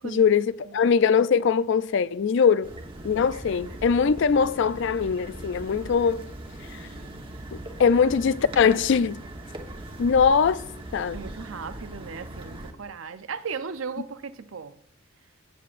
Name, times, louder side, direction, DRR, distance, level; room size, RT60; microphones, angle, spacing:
voice 1, 0.0-0.5 0.7-2.7 3.0-6.2 7.5-9.2 10.0-10.6 10.9-11.2, left 6 dB, 60° left, 0.4 m, -21 dB
sound 1, 2.6-12.7, right 1 dB, 25° right, 1.2 m, -40 dB
voice 2, 11.1-14.8, right 5 dB, 80° right, 0.6 m, -36 dB
17.0 x 8.3 x 2.5 m
head